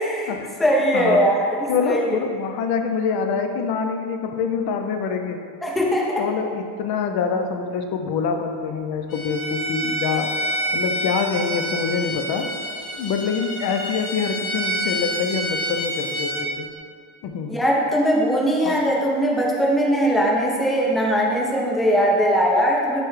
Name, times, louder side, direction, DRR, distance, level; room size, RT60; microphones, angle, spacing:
voice 1, 0.0-2.0 5.6-6.1 17.5-23.0, equal, ahead, -3 dB, 0.5 m, -20 dB
voice 2, 0.9-1.3 1.7-5.4 6.2-10.3 10.7-12.5 13.0-16.7 17.2-17.6 18.6-18.8, left 5 dB, 55° left, 5 dB, 0.5 m, -25 dB
Bowed string instrument, 9.1-16.5, right 1 dB, 30° left, 0.8 m, -28 dB
6.4 x 2.3 x 3.1 m, 2.2 s
cardioid pair, 115°, 45 cm